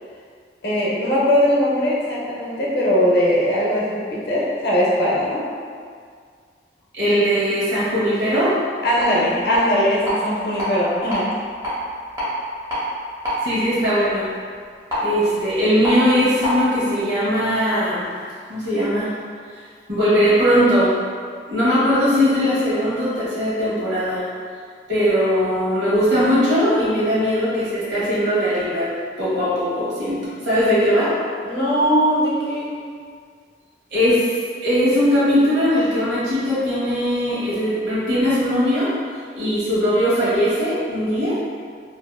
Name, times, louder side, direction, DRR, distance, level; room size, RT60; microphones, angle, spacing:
voice 1, 0.6-5.4 8.8-11.3 31.4-32.7, equal, 65° left, -5 dB, 0.6 m, -20 dB
voice 2, 6.9-8.5 13.4-14.4 15.0-18.2 18.5-19.1 19.9-21.1 21.5-24.3 24.9-31.2 33.9-34.3 34.6-38.9 39.3-41.4, equal, 75° right, -9 dB, 1.0 m, -19 dB
sound 1, 8.8-16.6, equal, 25° right, 0.7 m, -28 dB
2.6 x 2.4 x 2.2 m, 2.1 s
head